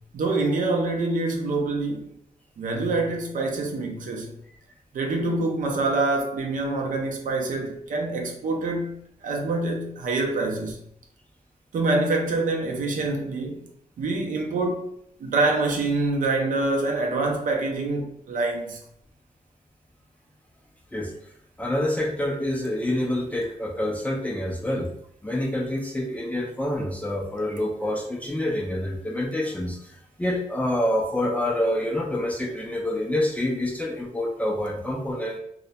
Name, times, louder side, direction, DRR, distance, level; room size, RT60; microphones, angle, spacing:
voice 1, 0.1-2.1 2.6-4.3 4.9-10.8 11.7-13.7 14.0-14.9 15.2-18.8, right 2 dB, 65° right, 0.5 m, -26 dB
voice 2, 21.6-24.9 25.2-35.4, left 1 dB, 10° left, 0.3 m, -27 dB
2.2 x 2.0 x 2.7 m
wide cardioid pair, 155°, 14 cm